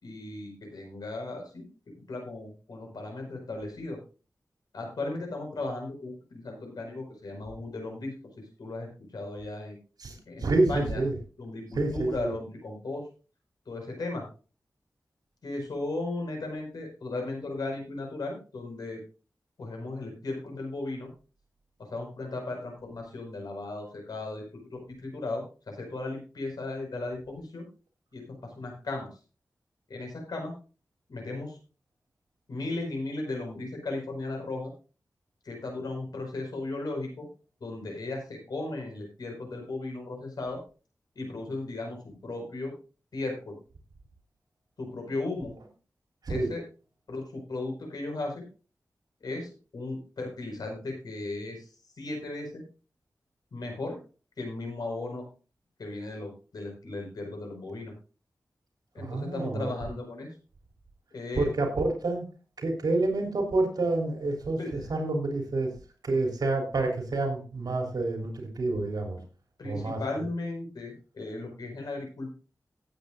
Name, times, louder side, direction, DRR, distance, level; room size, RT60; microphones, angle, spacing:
voice 1, 0.0-1.7 2.1-4.0 4.7-8.1 8.6-9.8 10.3-11.0 11.4-13.1 13.6-14.2 15.4-19.0 19.6-21.1 21.8-27.6 28.1-29.1 29.9-30.5 31.1-31.6 32.5-34.7 35.4-37.3 37.6-40.6 41.1-42.7 43.1-43.6 44.8-45.5 46.3-46.6 47.1-48.4 49.2-51.7 52.0-52.6 53.5-54.0 54.4-55.2 55.8-57.9 58.9-60.3 61.1-61.5 64.6-64.9 69.6-72.3, left 2 dB, 85° left, 2 dB, 5.0 m, -36 dB
voice 2, 10.4-11.1 11.7-12.3 46.2-46.5 59.0-59.7 61.4-62.3 62.6-65.7 66.0-69.2 69.6-70.0, right 2 dB, 80° right, 2 dB, 3.3 m, -28 dB
18.0 x 8.6 x 2.5 m, 0.34 s
wide cardioid pair, 100°, 7 cm